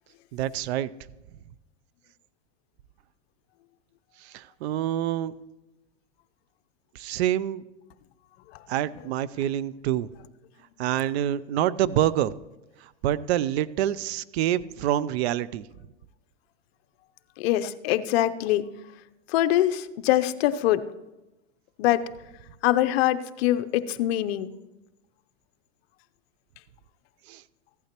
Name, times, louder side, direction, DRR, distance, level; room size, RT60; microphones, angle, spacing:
voice 1, 0.3-0.9 4.2-5.3 7.0-7.6 8.7-10.1 10.8-12.3 12.8-15.7 27.3-27.4, right 12 dB, 60° right, 19 dB, 0.5 m, -26 dB
voice 2, 17.4-18.7 19.3-20.9 21.8-22.1 22.6-24.5, left 13 dB, 55° left, 11 dB, 0.7 m, -24 dB
15.5 x 11.5 x 3.0 m, 1.0 s
supercardioid pair, 135°, 36 cm